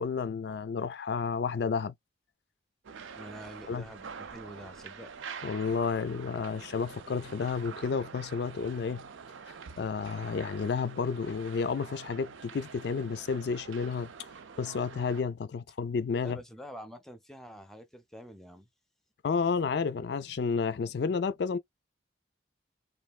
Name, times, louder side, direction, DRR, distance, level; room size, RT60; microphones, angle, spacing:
voice 1, 0.0-1.9 3.7-3.8 5.4-9.0 9.8-14.1 14.6-16.4 19.2-21.6, left 5 dB, 60° left, 0.3 m, -31 dB
sound 1, 2.8-15.2, right 6 dB, 90° right, 0.5 m, -46 dB
voice 2, 3.2-5.1 16.2-18.7, equal, ahead, 0.5 m, -47 dB
3.1 x 2.5 x 2.4 m
head